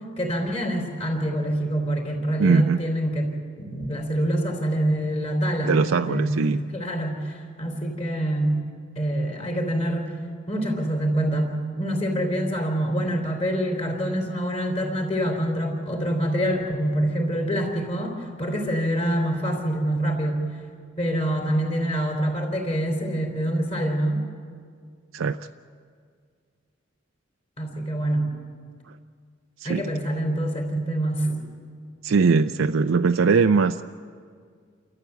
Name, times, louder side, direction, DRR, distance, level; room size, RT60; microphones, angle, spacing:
voice 1, 0.2-8.6 9.0-10.1 10.5-20.4 21.0-24.2 27.6-28.3 29.6-31.4, right 1 dB, 30° left, 2 dB, 3.7 m, -26 dB
voice 2, 2.4-2.8 5.6-6.6 25.1-25.4 29.6-29.8 32.0-33.8, right 5 dB, 90° right, 7 dB, 0.5 m, -20 dB
29.5 x 14.0 x 8.0 m, 2.1 s
head